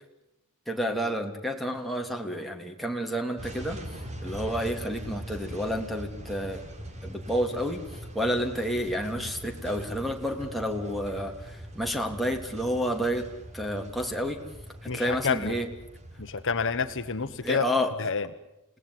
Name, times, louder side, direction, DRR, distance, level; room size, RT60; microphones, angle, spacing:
voice 1, 0.7-3.8 4.2-6.6 7.0-7.8 8.1-13.2 13.5-14.4 14.8-15.7 17.4-17.9, equal, ahead, 1 dB, 3.1 m, -30 dB
sound 1, 3.4-17.5, right 1 dB, 30° right, 3.9 m, -42 dB
voice 2, 14.9-15.6 16.2-17.7 18.0-18.3, left 5 dB, 60° left, 11 dB, 1.2 m, -29 dB
29.5 x 18.5 x 9.7 m, 0.90 s
head